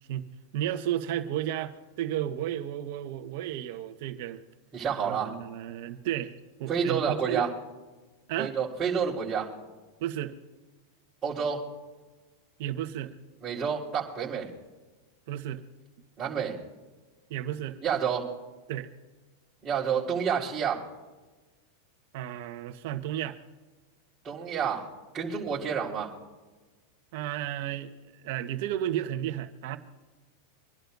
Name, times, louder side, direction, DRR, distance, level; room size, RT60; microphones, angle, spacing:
voice 1, 0.5-4.4 5.0-7.5 8.3-8.5 10.0-10.3 12.6-13.1 15.3-15.6 17.3-17.8 18.7-18.9 22.1-23.4 27.1-29.8, right 12 dB, 60° right, 7 dB, 1.4 m, -33 dB
voice 2, 4.7-5.3 6.7-7.5 8.4-9.5 11.2-11.6 13.4-14.5 16.2-16.6 17.8-18.3 19.6-20.8 24.2-24.9 25.1-26.1, right 7 dB, 20° right, -8 dB, 4.4 m, -29 dB
27.0 x 11.5 x 2.8 m, 1.3 s
supercardioid pair, 130°, 0 cm